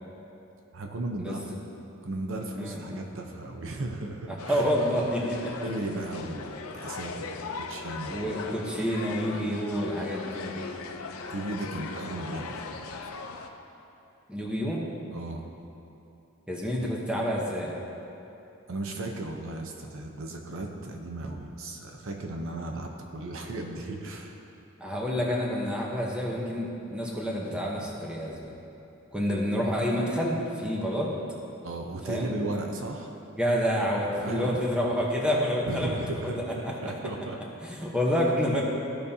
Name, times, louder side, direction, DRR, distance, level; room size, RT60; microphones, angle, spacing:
voice 1, 0.7-1.6 2.0-4.7 5.6-8.2 11.3-13.2 15.1-15.5 18.7-24.4 31.6-33.1 34.2-34.6 35.7-37.4, right 2 dB, 65° right, 2 dB, 0.7 m, -35 dB
voice 2, 2.6-3.1 4.3-5.5 8.1-10.6 14.3-14.8 16.5-17.7 24.8-28.5 29.1-31.1 32.1-32.3 33.4-36.0 36.2-36.7 37.6-38.6, equal, 5° right, -3 dB, 1.0 m, -28 dB
sound 1, 4.4-13.5, left 4 dB, 80° left, 0.6 m, -39 dB
15.0 x 5.2 x 2.8 m, 2.9 s
head